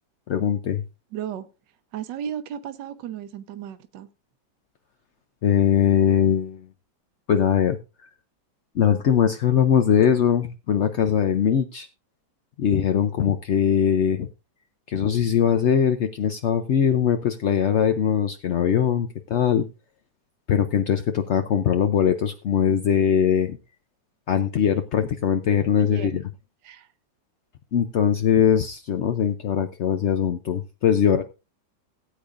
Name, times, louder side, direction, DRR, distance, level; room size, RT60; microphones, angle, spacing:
voice 1, 0.3-0.8 5.4-6.6 7.3-7.8 8.7-11.9 12.6-14.3 14.9-19.6 20.5-23.6 24.3-26.2 27.7-31.2, left 8 dB, 70° left, 0.6 m, -21 dB
voice 2, 1.1-1.5 1.9-4.1 25.8-26.1 26.6-26.9, right 9 dB, 70° right, 1.5 m, -34 dB
18.0 x 8.6 x 2.5 m
omnidirectional pair, 2.0 m